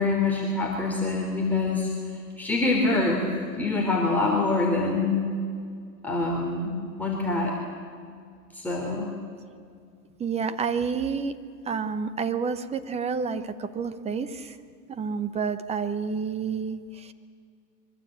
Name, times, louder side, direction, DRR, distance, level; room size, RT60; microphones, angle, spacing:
voice 1, 0.0-1.9 2.4-3.2 3.6-5.2 6.0-7.5 8.5-9.1, left 3 dB, 5° left, -3 dB, 3.4 m, -25 dB
voice 2, 10.2-11.4 11.7-14.6 14.9-17.1, right 5 dB, 15° right, 11 dB, 1.0 m, -29 dB
24.5 x 24.0 x 8.7 m, 2.2 s
hypercardioid pair, 140°, 49 cm